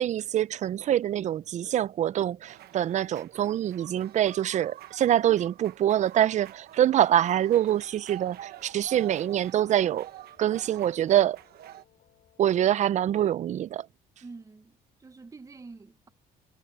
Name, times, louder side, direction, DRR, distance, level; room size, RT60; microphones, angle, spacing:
voice 1, 0.0-10.1 10.4-11.4 12.4-13.9, right 11 dB, 45° right, 0.4 m, -25 dB
sound 1, 2.5-11.8, right 14 dB, 70° right, 1.1 m, -47 dB
sound 2, 7.5-13.7, left 11 dB, 60° left, 6.5 m, -63 dB
voice 2, 14.2-16.1, right 3 dB, 20° right, 1.0 m, -47 dB
cardioid pair, 110°, 17 cm